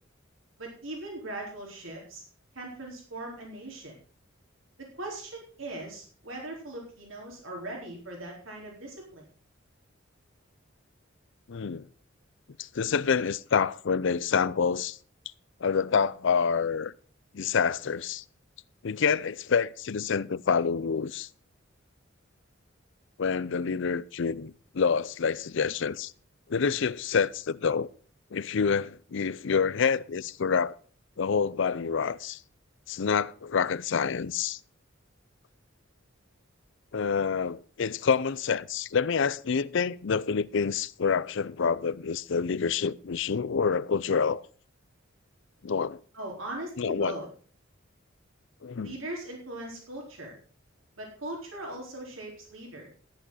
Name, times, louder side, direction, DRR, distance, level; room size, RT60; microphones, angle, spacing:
voice 1, 0.6-2.2 2.5-4.0 4.8-9.2 46.1-47.3 48.8-50.3 51.0-52.9, right 1 dB, 80° right, 4.3 m, -39 dB
voice 2, 11.5-11.9 12.6-15.0 15.6-16.9 17.3-18.2 18.8-21.3 23.2-26.1 26.5-27.9 28.3-30.7 31.2-32.4 32.9-34.6 36.9-44.4 45.6-46.0 46.8-47.2 48.6-49.0, left 6 dB, 70° left, 0.5 m, -27 dB
14.0 x 10.0 x 4.1 m
head